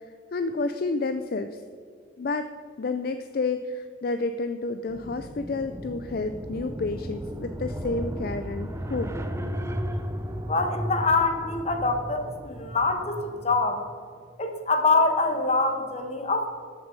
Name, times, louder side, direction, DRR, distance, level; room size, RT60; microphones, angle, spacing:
voice 1, 0.3-1.6 2.2-2.5 2.8-9.1, left 3 dB, 50° left, 9 dB, 0.4 m, -30 dB
sound 1, 4.9-13.7, equal, 15° right, 0.5 m, -35 dB
voice 2, 10.5-13.8 14.4-16.5, left 3 dB, 35° left, 6 dB, 1.1 m, -24 dB
13.5 x 6.4 x 5.3 m, 2.1 s
head